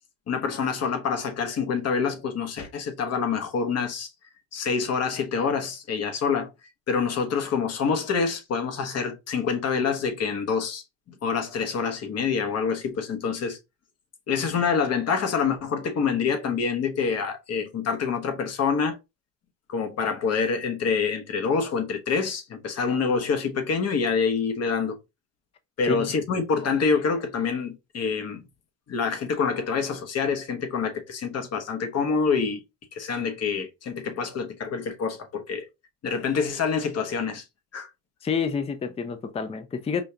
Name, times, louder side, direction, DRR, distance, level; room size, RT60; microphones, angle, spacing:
voice 1, 0.3-4.1 4.5-6.5 6.9-10.8 11.2-13.6 14.3-19.0 19.7-25.0 25.8-28.4 28.9-32.6 32.9-35.7 36.0-37.4 37.7-37.9, left 5 dB, 45° left, 1.0 m, -26 dB
voice 2, 38.2-40.0, left 5 dB, 20° left, 0.5 m, -28 dB
5.0 x 2.7 x 2.3 m
cardioid pair, 115°, 34 cm